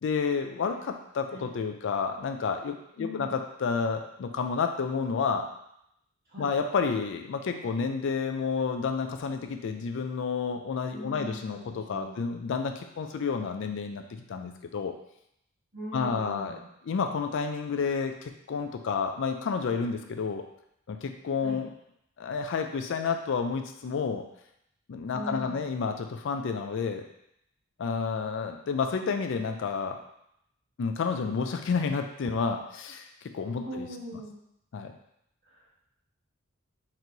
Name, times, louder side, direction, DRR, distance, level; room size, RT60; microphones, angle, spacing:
voice 1, 0.0-5.5 6.4-14.9 15.9-16.6 16.9-20.4 20.9-21.7 22.2-24.2 24.9-27.0 27.8-30.0 30.8-33.1 33.3-33.9 34.7-34.9, left 5 dB, 60° left, 6 dB, 0.4 m, -30 dB
voice 2, 3.0-3.4 6.2-6.5 10.9-12.2 15.7-16.7 21.4-21.6 25.1-25.7 33.6-34.4 35.4-35.7, equal, 50° right, -9 dB, 1.7 m, -41 dB
4.4 x 3.1 x 3.9 m, 0.77 s
head